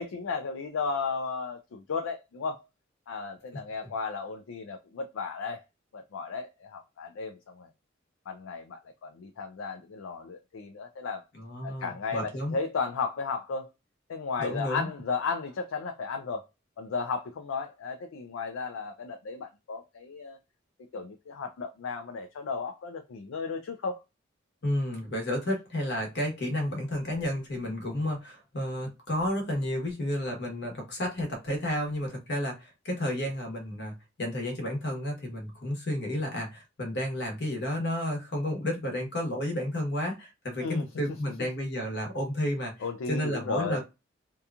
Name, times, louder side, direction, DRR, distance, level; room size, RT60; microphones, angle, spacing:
voice 1, 0.0-2.6 3.1-5.6 5.9-7.7 8.3-11.2 11.6-13.7 14.1-16.5 16.8-20.4 20.9-24.0 40.6-40.8 42.8-43.8, left 4 dB, 90° left, 0.4 m, -34 dB
voice 2, 11.3-12.6 14.4-14.9 24.6-42.7 43.1-43.8, left 1 dB, 60° left, 1.1 m, -31 dB
2.8 x 2.3 x 2.4 m
head